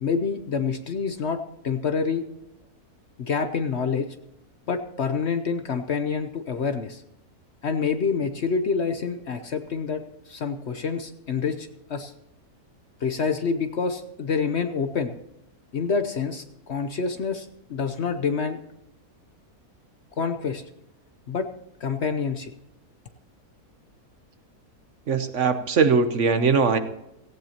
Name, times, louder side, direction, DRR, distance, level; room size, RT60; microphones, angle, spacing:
voice 1, 0.0-2.2 3.2-4.1 4.7-7.0 7.6-12.1 13.0-15.1 15.7-18.6 20.2-20.6 21.3-21.5 21.8-22.5, left 5 dB, 55° left, 8 dB, 0.9 m, -27 dB
voice 2, 25.1-26.8, right 5 dB, 55° right, 9 dB, 1.1 m, -20 dB
17.0 x 16.0 x 2.9 m, 0.86 s
omnidirectional pair, 1.6 m